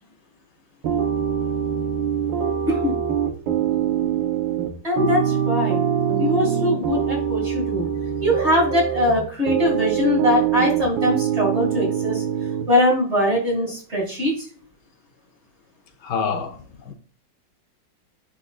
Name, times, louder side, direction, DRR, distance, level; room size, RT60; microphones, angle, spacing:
sound 1, 0.8-12.6, right 9 dB, 80° right, 1.7 m, -23 dB
voice 1, 4.8-5.8 6.2-7.9 8.2-12.2 12.7-14.5, left 1 dB, 35° right, 2.3 m, -22 dB
voice 2, 16.0-16.9, left 6 dB, 70° left, 1.4 m, -27 dB
10.0 x 4.1 x 2.4 m
omnidirectional pair, 2.0 m